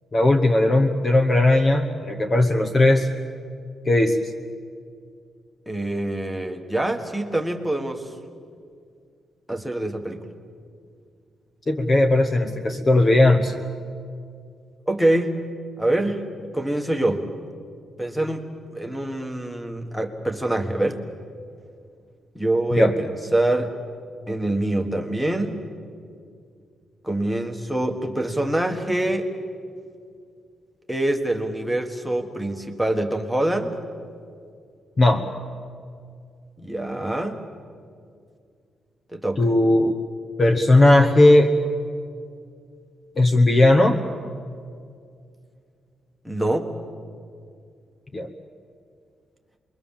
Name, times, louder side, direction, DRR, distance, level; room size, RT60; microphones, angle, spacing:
voice 1, 0.1-3.1 3.8-4.2 11.7-13.5 22.7-22.9 35.0-35.3 39.4-39.9 40.4-41.6 43.2-43.9 48.1-48.3, left 1 dB, 30° left, 7 dB, 1.0 m, -17 dB
voice 2, 5.7-8.1 9.5-10.2 14.9-15.4 15.8-17.3 18.0-18.5 18.7-21.0 22.3-23.1 23.3-23.7 24.3-25.6 27.0-29.3 30.9-33.8 36.6-37.4 39.1-39.4 46.2-46.7, right 1 dB, ahead, 6 dB, 1.5 m, -25 dB
27.0 x 22.0 x 7.3 m, 2.3 s
wide cardioid pair, 145°, 0 cm